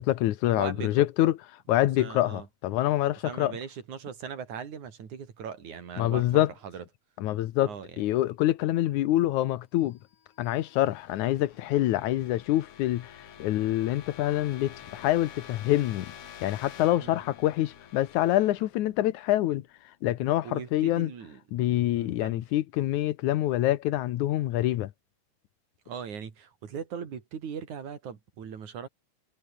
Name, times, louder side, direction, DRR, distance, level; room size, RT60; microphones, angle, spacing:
voice 1, 0.0-1.4 1.7-3.6 6.0-6.5 7.2-10.0 10.4-16.1 16.4-19.7 20.0-21.1 21.5-24.9, left 14 dB, 85° left, 2.4 m, -26 dB
voice 2, 0.5-1.0 2.0-2.5 3.2-6.3 6.6-6.8 7.7-7.9 17.0-17.2 20.4-21.4 21.9-22.4 25.9-28.9, right 7 dB, 85° right, 4.3 m, -39 dB
sound 1, 10.0-19.8, left 9 dB, 55° left, 2.4 m, -49 dB
omnidirectional pair, 3.3 m